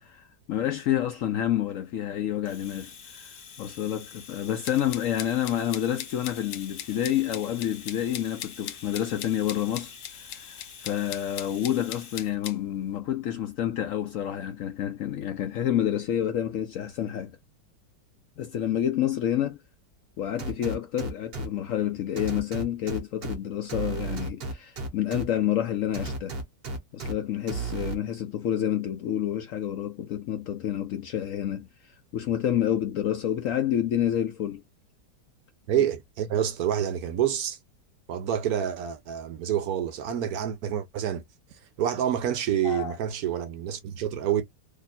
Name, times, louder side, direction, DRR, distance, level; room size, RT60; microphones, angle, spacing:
voice 1, 0.0-17.4 18.4-19.6 20.2-26.4 26.9-34.6 42.6-43.0, left 11 dB, 65° left, 0.8 m, -29 dB
Domestic sounds home sounds, 2.4-12.3, left 6 dB, 45° left, 1.0 m, -47 dB
sound 1, 4.6-12.6, left 11 dB, 90° left, 1.2 m, -39 dB
sound 2, 20.4-21.5 22.2-23.3 23.7-25.2 25.9-27.1 27.5-27.9, right 3 dB, 45° right, 1.0 m, -33 dB
voice 2, 35.7-37.6 38.1-41.2 41.5-44.4, right 10 dB, 70° right, 1.0 m, -28 dB
3.1 x 2.4 x 4.1 m
omnidirectional pair, 1.8 m